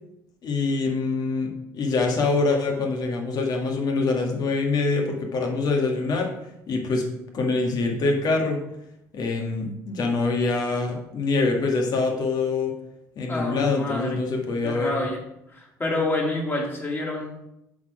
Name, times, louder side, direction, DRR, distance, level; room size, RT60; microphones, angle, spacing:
voice 1, 0.4-6.3 6.7-7.0 7.3-8.6 9.1-12.7 13.1-14.9, left 3 dB, 55° left, 2 dB, 1.7 m, -24 dB
voice 2, 13.3-14.2 14.6-15.2 15.5-17.5, left 2 dB, 25° left, -1 dB, 2.4 m, -28 dB
7.1 x 4.3 x 4.9 m, 0.84 s
supercardioid pair, 75°, 8 cm